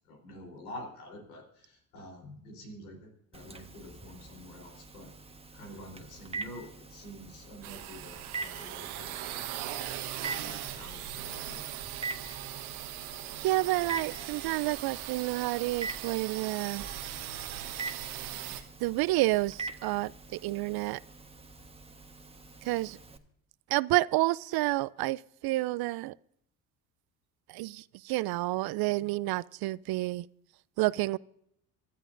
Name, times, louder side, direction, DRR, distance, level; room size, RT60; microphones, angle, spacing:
voice 1, 0.1-5.1 5.5-9.4 10.4-11.6 22.6-22.7, left 1 dB, 90° left, 3.9 m, -47 dB
Telephone, 3.3-23.2, right 3 dB, 15° right, 1.3 m, -44 dB
sound 1, 7.6-18.6, right 12 dB, 85° right, 1.3 m, -39 dB
voice 2, 13.4-16.9 18.8-21.0 22.6-23.0 23.7-26.1 27.5-30.3 30.8-31.2, right 19 dB, 60° right, 0.5 m, -29 dB
25.0 x 12.5 x 2.6 m
hypercardioid pair, 60°, 43 cm